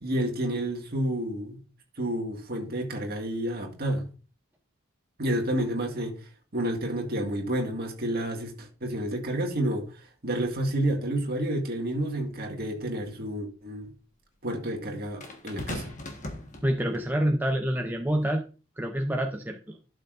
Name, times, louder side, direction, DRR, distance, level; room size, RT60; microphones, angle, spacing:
voice 1, 0.0-1.6 2.0-4.1 5.2-6.1 6.5-13.9 14.4-15.9, right 1 dB, 45° right, 1.9 m, -30 dB
sound 1, 12.3-12.4 15.2-17.1 18.0-18.2, left 1 dB, 35° left, 1.4 m, -39 dB
voice 2, 16.6-18.4 18.8-19.6, equal, 10° right, 0.6 m, -27 dB
12.0 x 6.6 x 2.5 m
head